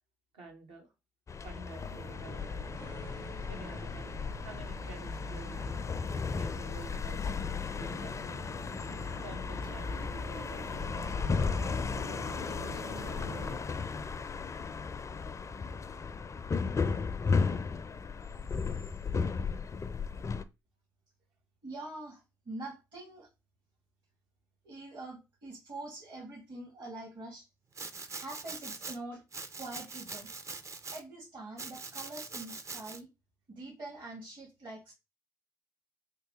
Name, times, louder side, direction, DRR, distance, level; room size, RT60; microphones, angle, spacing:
voice 1, 0.3-0.9 1.4-2.5 3.5-4.1 4.4-5.8 6.4-8.4 9.2-13.4, right 2 dB, 70° right, 1 dB, 1.1 m, -50 dB
sound 1, 1.3-20.4, left 5 dB, 30° left, 0.4 m, -35 dB
sound 2, 1.8-13.6, right 1 dB, 85° right, 0.7 m, -47 dB
voice 2, 21.6-23.3 24.6-27.5 28.1-29.2 29.5-30.3 30.9-33.1 33.5-34.9, right 2 dB, 50° right, -4 dB, 1.7 m, -44 dB
Domestic sounds home sounds, 27.7-29.0 29.3-31.0 31.6-33.0, right 4 dB, 30° right, 0.5 m, -43 dB
3.2 x 2.7 x 3.5 m, 0.25 s
hypercardioid pair, 45°, 10 cm